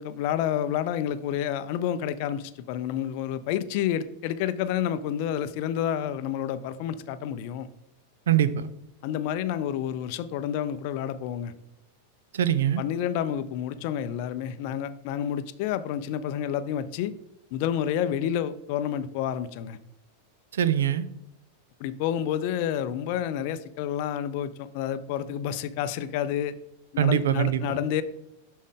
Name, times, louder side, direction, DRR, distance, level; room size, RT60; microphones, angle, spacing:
voice 1, 0.0-7.7 9.0-11.5 12.8-17.1 17.5-19.8 21.8-26.5 26.9-28.0, left 10 dB, 45° left, 13 dB, 0.5 m, -29 dB
voice 2, 8.3-8.7 12.3-12.8 20.5-21.1 27.0-27.8, right 10 dB, 60° right, 14 dB, 0.5 m, -23 dB
7.2 x 6.3 x 3.7 m, 0.85 s
figure-of-eight pair, 90°, 0 cm